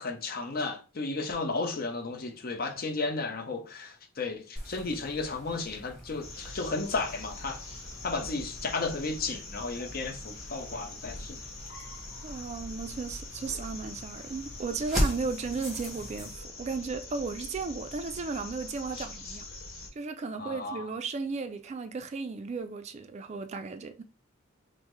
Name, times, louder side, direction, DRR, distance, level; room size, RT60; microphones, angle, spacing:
voice 1, 0.0-7.6 8.0-11.4 20.4-20.9, left 3 dB, 50° left, 0.7 m, -33 dB
sound 1, 4.6-16.3, equal, ahead, 1.3 m, -39 dB
sound 2, 6.2-19.9, left 2 dB, 85° left, 1.0 m, -44 dB
voice 2, 12.2-19.4 20.0-24.0, right 4 dB, 35° right, 0.3 m, -35 dB
5.5 x 2.1 x 3.0 m
head